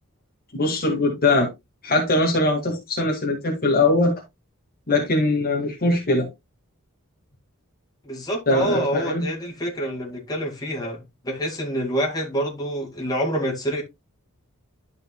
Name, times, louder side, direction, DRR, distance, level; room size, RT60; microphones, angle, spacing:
voice 1, 0.5-1.5 1.8-4.1 4.9-6.3 8.5-9.3, left 2 dB, 45° left, 2.0 m, -21 dB
voice 2, 8.0-13.8, equal, 20° left, 2.6 m, -27 dB
12.0 x 5.5 x 2.3 m
head